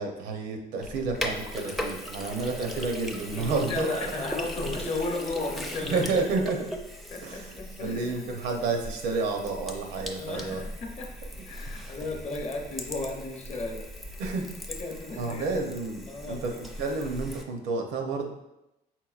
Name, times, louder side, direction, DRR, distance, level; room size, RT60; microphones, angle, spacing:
voice 1, 0.0-3.9 5.9-6.7 7.2-10.6 14.2-14.5 15.1-18.3, right 3 dB, 80° right, 3 dB, 0.7 m, -30 dB
Sink (filling or washing), 0.8-17.4, equal, ahead, 0.4 m, -38 dB
voice 2, 3.3-6.1 7.1-8.3 10.2-13.9 14.7-15.6 16.1-16.6, left 2 dB, 40° left, 2 dB, 0.7 m, -35 dB
4.6 x 3.7 x 2.4 m, 0.91 s
cardioid pair, 110°, 17 cm